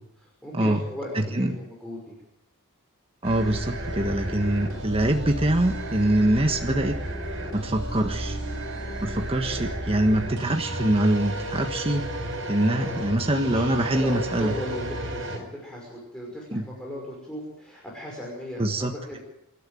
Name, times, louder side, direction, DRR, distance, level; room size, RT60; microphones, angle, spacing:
voice 1, 0.2-2.1 12.7-13.2 13.5-19.2, left 1 dB, 5° left, -3 dB, 5.9 m, -36 dB
voice 2, 1.1-1.6 3.2-7.0 7.5-8.4 9.0-12.1 12.5-14.5 16.5-16.6 18.6-19.2, right 1 dB, 25° right, 4 dB, 1.5 m, -24 dB
sound 1, 3.2-15.4, right 1 dB, 60° right, 6.3 m, -33 dB
28.0 x 12.5 x 9.3 m, 0.82 s
head